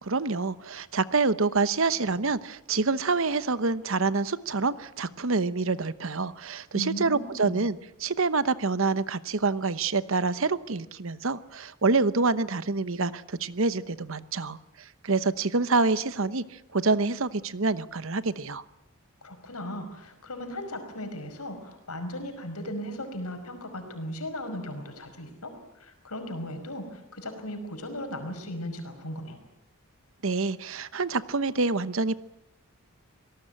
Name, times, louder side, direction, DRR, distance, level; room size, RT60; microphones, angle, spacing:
voice 1, 0.0-18.6 30.2-32.2, right 3 dB, 60° right, 15 dB, 1.0 m, -27 dB
voice 2, 6.7-7.6 19.2-29.4, left 1 dB, 90° left, 7 dB, 5.4 m, -37 dB
26.0 x 18.5 x 9.0 m, 0.84 s
head